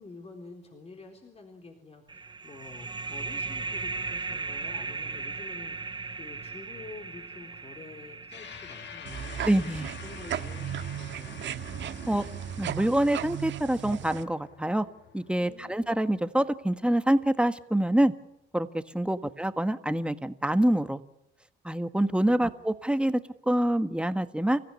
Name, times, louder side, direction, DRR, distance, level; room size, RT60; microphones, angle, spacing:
voice 1, 0.0-9.5 10.0-11.5 15.4-15.8 19.1-19.3 22.2-22.5, left 3 dB, 30° left, 3 dB, 3.8 m, -48 dB
sound 1, 2.1-11.4, right 4 dB, 25° right, 0.9 m, -38 dB
sound 2, 8.3-17.0, left 8 dB, 65° left, 1.9 m, -48 dB
sound 3, 9.1-14.2, right 10 dB, 65° right, 1.5 m, -36 dB
voice 2, 9.4-9.9 12.1-12.2 12.6-14.8 15.1-18.1 18.5-21.0 21.6-24.6, right 1 dB, 5° right, 10 dB, 1.6 m, -26 dB
29.0 x 15.5 x 9.9 m, 0.82 s
cardioid pair, 90°, 20 cm